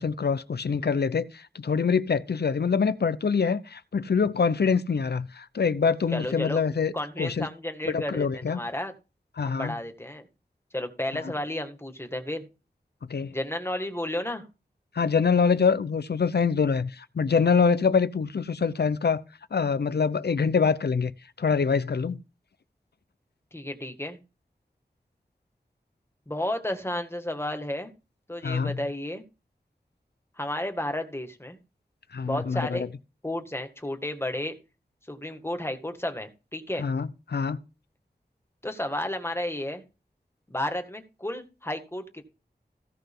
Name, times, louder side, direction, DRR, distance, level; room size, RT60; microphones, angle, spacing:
voice 1, 0.0-6.9 7.2-7.5 7.8-8.6 9.4-9.7 11.2-11.3 13.1-13.3 14.9-19.2 19.5-21.1 21.4-22.2 28.4-28.8 32.1-32.9 36.8-37.6, left 5 dB, 80° left, 0.8 m, -25 dB
voice 2, 6.1-6.6 6.9-8.9 9.4-10.2 10.7-12.5 13.3-14.5 23.5-24.2 26.3-27.9 28.3-29.2 30.4-31.6 32.3-32.8 33.2-34.5 35.1-36.8 38.6-39.8 40.5-42.0, left 1 dB, 15° left, 1.9 m, -32 dB
16.5 x 5.6 x 3.7 m
wide cardioid pair, 75°, 17 cm